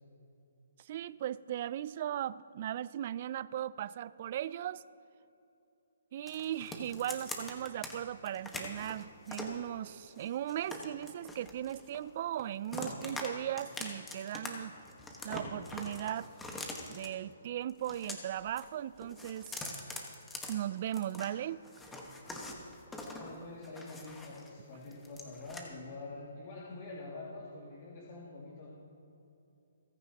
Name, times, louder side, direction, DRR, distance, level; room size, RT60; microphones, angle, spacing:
voice 1, 0.8-4.8 6.1-14.8 15.2-16.3 16.9-19.5 20.5-21.6, right 11 dB, 45° right, 19 dB, 0.4 m, -37 dB
sound 1, 6.3-7.9 8.2-9.6 10.1-12.1 12.4-13.3 13.6-14.5 14.7-17.1 17.7-18.7 19.0-21.3 21.6-24.5 24.8-25.6, left 2 dB, 10° left, 1.4 m, -43 dB
voice 2, 23.2-28.7, left 2 dB, 40° left, -5 dB, 2.4 m, -46 dB
29.0 x 9.7 x 3.0 m, 2.8 s
hypercardioid pair, 150°, 0 cm